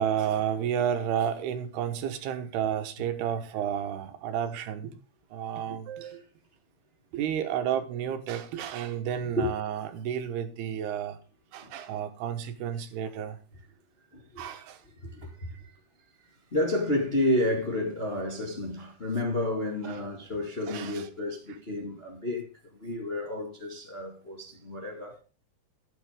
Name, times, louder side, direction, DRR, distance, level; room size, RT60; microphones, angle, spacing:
voice 1, 0.0-5.0 5.3-6.2 7.1-11.2 11.5-13.4 14.4-14.8 19.8-20.0 20.7-21.1, right 9 dB, 85° right, 3.3 m, -31 dB
voice 2, 5.7-6.1 9.4-9.5 11.6-11.7 14.1-14.4 15.0-15.7 16.5-22.5 22.8-25.2, left 1 dB, 25° left, 1.2 m, -31 dB
12.5 x 8.8 x 3.6 m
omnidirectional pair, 4.5 m